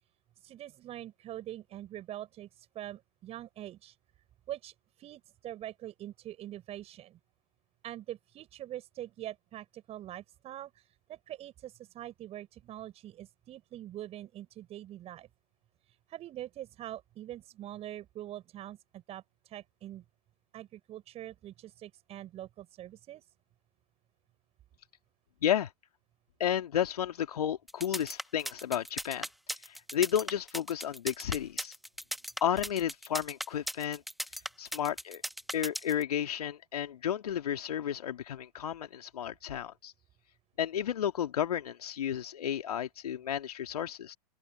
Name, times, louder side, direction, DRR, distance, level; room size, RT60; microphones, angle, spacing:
voice 1, 0.4-4.0 4.5-7.2 7.8-15.3 15.9-20.0 20.5-23.2, right 13 dB, 30° right, 6.6 m, -44 dB
voice 2, 26.4-29.3 29.6-31.7 32.4-34.0 34.6-35.2 35.5-39.9 40.6-44.2, left 10 dB, 65° left, 2.9 m, -32 dB
sound 1, 27.7-36.0, equal, ahead, 1.2 m, -37 dB
open air
figure-of-eight pair, 105°, 21 cm